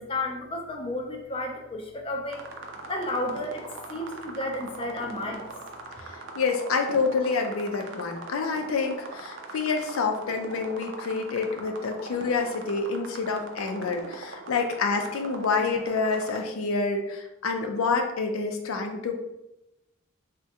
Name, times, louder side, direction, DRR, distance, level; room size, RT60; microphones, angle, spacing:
voice 1, 0.0-2.4 2.8-3.6 3.9-5.5, left 1 dB, 25° left, 2 dB, 0.4 m, -32 dB
sound 1, 2.3-16.4, right 3 dB, 65° right, 0.4 m, -41 dB
voice 2, 6.0-19.2, left 4 dB, 90° left, 4 dB, 0.4 m, -28 dB
3.4 x 2.2 x 2.7 m, 0.92 s
head